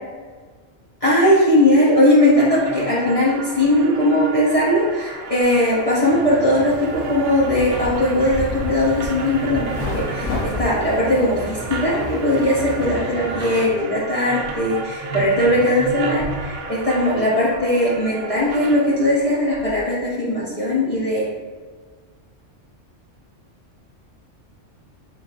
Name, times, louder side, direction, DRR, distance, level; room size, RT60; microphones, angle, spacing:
voice 1, 1.0-21.3, left 1 dB, 35° left, -8 dB, 0.7 m, -19 dB
sound 1, 2.4-19.8, right 4 dB, 75° right, 0.9 m, -33 dB
sound 2, 6.0-13.7, right 2 dB, 45° right, 0.4 m, -34 dB
sound 3, 6.6-12.9, left 2 dB, 90° left, 1.1 m, -32 dB
4.1 x 3.2 x 2.5 m, 1.5 s
omnidirectional pair, 1.2 m